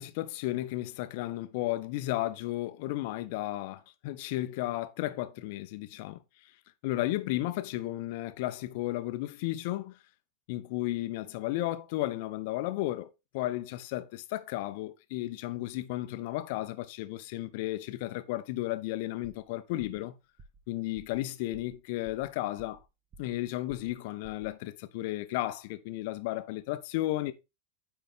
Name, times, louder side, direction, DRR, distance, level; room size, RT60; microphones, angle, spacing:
voice 1, 0.0-6.2 6.8-10.0 10.5-20.1 20.7-22.8 23.2-27.3, left 16 dB, 50° left, 0.7 m, -34 dB
sound 1, 19.2-19.5 19.8-20.1 20.4-20.7 20.9-21.2 21.5-21.8 22.0-22.9 23.1-23.4 23.7-24.0 24.2-24.5, right 3 dB, 30° right, 1.2 m, -54 dB
9.2 x 4.5 x 3.5 m
figure-of-eight pair, 90°, 0 cm